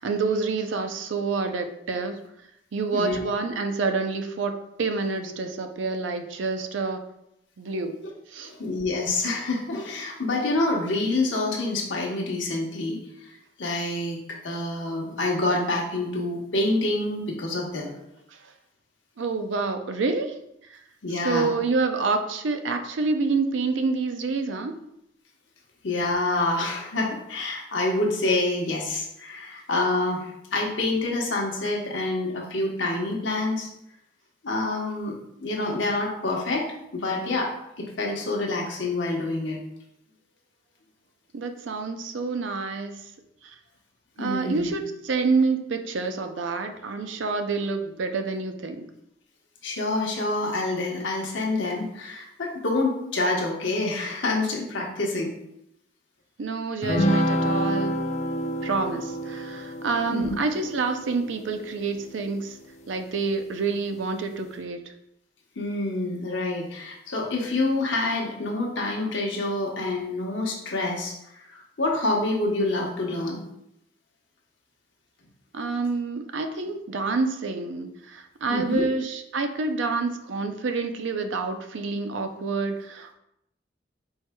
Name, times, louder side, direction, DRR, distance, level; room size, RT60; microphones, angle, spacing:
voice 1, 0.0-2.2 2.7-7.0 7.6-8.0 8.3-8.5 19.2-20.4 20.7-20.8 21.1-24.7 41.3-43.1 43.4-43.6 44.2-48.9 56.4-58.0 58.6-62.6 62.9-64.8 75.5-83.1, right 4 dB, 75° right, 6 dB, 0.5 m, -28 dB
voice 2, 8.5-13.0 13.6-18.0 21.0-21.5 25.8-33.7 34.4-36.7 36.9-37.5 37.8-39.6 44.2-44.7 49.6-55.3 60.1-60.4 65.6-73.4 78.5-78.9, left 2 dB, 80° left, -1 dB, 1.0 m, -27 dB
sound 1, 56.8-62.5, equal, 40° left, 0.5 m, -28 dB
4.6 x 4.5 x 2.2 m, 0.80 s
head